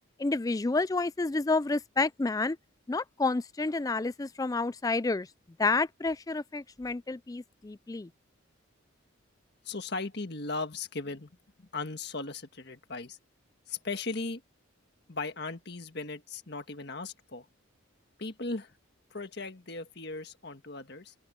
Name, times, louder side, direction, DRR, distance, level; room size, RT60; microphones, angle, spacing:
voice 1, 0.2-2.6 2.9-5.3 5.6-8.1, left 3 dB, 15° left, 0.3 m, -29 dB
voice 2, 9.7-11.3 11.6-13.2 13.7-14.4 15.1-17.5 18.2-18.7 19.1-21.1, left 3 dB, 55° left, 1.6 m, -37 dB
open air
head